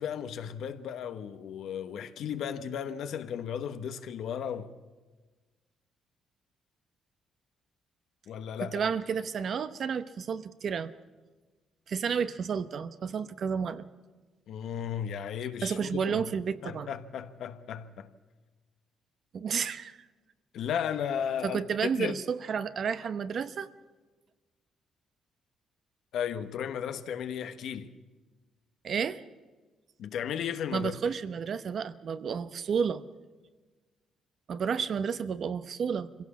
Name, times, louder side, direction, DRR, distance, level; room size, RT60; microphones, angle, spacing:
voice 1, 0.0-4.7 8.3-8.8 14.5-16.3 16.6-18.1 20.5-21.6 22.0-22.2 26.1-27.9 30.0-30.9, left 8 dB, 75° left, 1.1 m, -35 dB
voice 2, 8.6-10.9 11.9-13.8 15.6-16.9 19.3-20.0 21.4-23.7 28.8-29.2 30.7-33.0 34.5-36.2, right 6 dB, 55° right, 0.9 m, -31 dB
24.0 x 16.5 x 7.3 m
cardioid pair, 90°, 0 cm